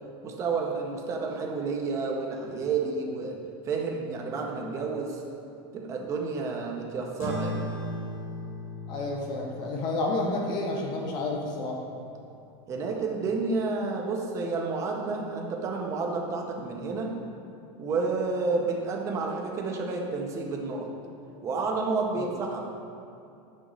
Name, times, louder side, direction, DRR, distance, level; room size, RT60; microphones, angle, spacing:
voice 1, 0.2-3.4 3.7-5.2 5.7-7.6 12.7-17.1 17.8-20.9 21.4-22.6, right 4 dB, 20° right, 1 dB, 0.7 m, -30 dB
sound 1, 7.2-12.0, left 1 dB, 55° left, 1.5 m, -38 dB
voice 2, 8.9-11.8 22.1-22.3, left 2 dB, 30° left, -1 dB, 0.6 m, -30 dB
7.7 x 6.4 x 3.0 m, 2.6 s
supercardioid pair, 170°, 14 cm